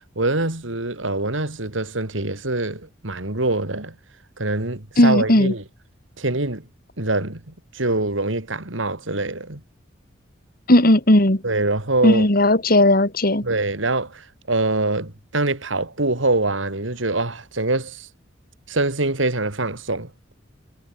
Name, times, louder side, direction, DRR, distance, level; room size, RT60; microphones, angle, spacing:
voice 1, 0.2-3.9 4.4-5.6 6.2-6.7 7.0-9.6 11.4-12.3 13.4-18.1 18.7-20.1, right 2 dB, 80° right, 3.3 m, -24 dB
voice 2, 5.0-5.5 10.7-11.4 12.0-13.4, left 1 dB, 50° left, 3.0 m, -16 dB
head